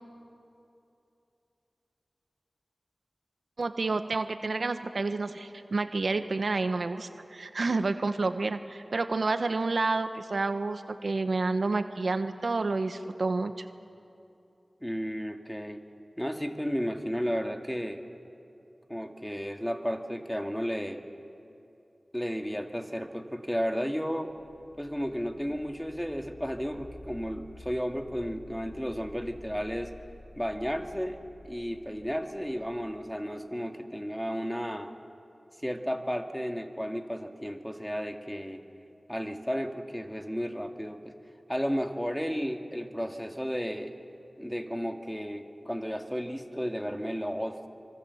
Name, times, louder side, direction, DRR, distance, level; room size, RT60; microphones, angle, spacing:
voice 1, 3.6-13.5, right 3 dB, 75° right, 9 dB, 1.1 m, -29 dB
voice 2, 14.8-15.8 16.2-18.0 18.9-21.0 22.1-24.3 24.8-29.9 30.4-34.9 35.6-38.6 39.1-41.1 41.5-43.9 44.4-47.7, equal, 5° left, 5 dB, 2.1 m, -33 dB
sound 1, 24.3-33.1, left 1 dB, 50° left, 2.4 m, -51 dB
27.0 x 25.5 x 7.2 m, 2.8 s
cardioid pair, 45°, 0 cm